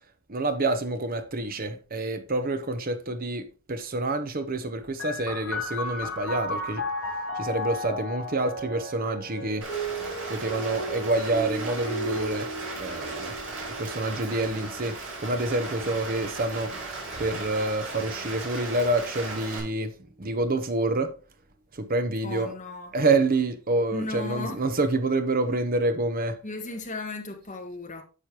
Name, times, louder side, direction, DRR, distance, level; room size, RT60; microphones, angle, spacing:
voice 1, 0.3-6.8 7.4-9.6 10.3-12.5 12.8-13.4 13.8-16.8 17.2-19.9 20.2-21.1 21.7-22.5 22.9-26.4, right 2 dB, 45° right, 0.9 m, -27 dB
sound 1, 5.0-18.2 19.1-19.9, equal, 75° left, 3.9 m, -35 dB
Rain, 9.6-19.6, right 3 dB, 60° right, 3.2 m, -37 dB
voice 2, 22.2-23.0 23.9-24.6 26.4-28.0, left 2 dB, 35° left, 1.6 m, -35 dB
10.0 x 6.4 x 2.9 m
head